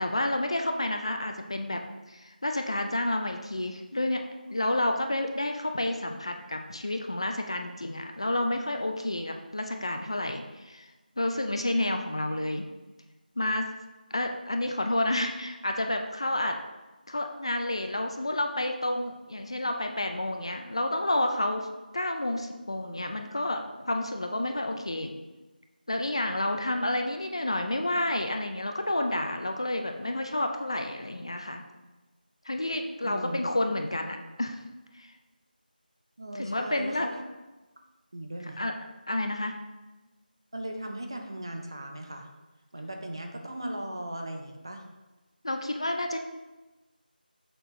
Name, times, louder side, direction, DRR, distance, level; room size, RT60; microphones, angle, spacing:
voice 1, 0.0-1.8 2.1-4.2 4.5-10.9 11.2-12.7 13.4-13.7 14.1-16.5 17.1-21.7 21.9-25.1 25.9-31.6 32.5-34.6 34.9-35.1 36.3-37.1 38.4-38.7 39.1-39.5 45.4-46.2, left 1 dB, 35° left, 5 dB, 0.5 m, -30 dB
voice 2, 33.0-33.4 36.2-37.2 38.1-38.6 40.5-42.3 42.7-44.8, right 1 dB, 30° right, 3 dB, 0.6 m, -37 dB
6.7 x 4.3 x 4.9 m, 1.1 s
figure-of-eight pair, 180°, 5 cm